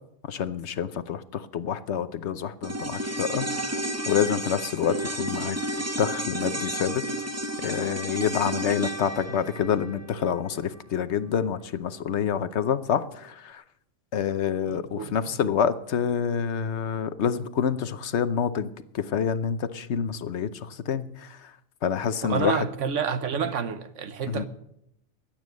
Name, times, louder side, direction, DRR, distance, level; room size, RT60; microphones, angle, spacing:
voice 1, 0.3-3.8 4.1-5.6 6.0-7.0 7.6-13.6 14.1-18.7 18.9-21.5 21.8-22.6 24.3-24.5, left 8 dB, 65° left, 1.1 m, -27 dB
sound 1, 2.6-11.1 11.4-11.5, right 1 dB, 15° right, 0.8 m, -32 dB
voice 2, 14.7-15.2 22.2-24.5, right 6 dB, 75° right, 1.3 m, -29 dB
22.0 x 9.0 x 6.4 m
omnidirectional pair, 1.3 m